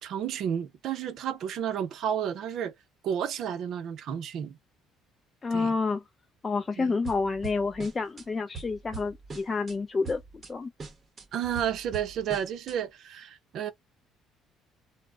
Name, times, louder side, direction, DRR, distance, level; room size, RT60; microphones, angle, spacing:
voice 1, 0.0-2.7 3.0-4.6 5.5-5.7 6.8-7.0 11.3-13.7, right 9 dB, 65° right, 0.5 m, -31 dB
voice 2, 5.4-6.0 6.4-10.2 10.5-10.7, left 4 dB, 25° left, 0.3 m, -29 dB
sound 1, 7.0-8.3 8.5-9.8 10.0-10.5 10.8-12.8, right 5 dB, 30° right, 0.8 m, -42 dB
2.0 x 2.0 x 3.4 m
cardioid pair, 105°, 0 cm